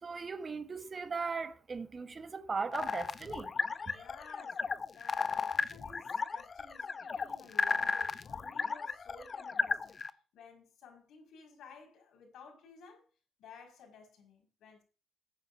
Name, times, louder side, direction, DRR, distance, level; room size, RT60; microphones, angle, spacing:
voice 1, 0.0-3.5 3.8-3.9, right 4 dB, 35° right, 1.3 m, -38 dB
sound 1, 2.7-10.1, left 5 dB, 40° left, 0.9 m, -34 dB
voice 2, 3.9-4.6 4.9-10.0 10.3-13.1 13.4-14.8, left 4 dB, 75° left, 5.8 m, -55 dB
16.0 x 9.3 x 2.8 m
cardioid pair, 90°, 0 cm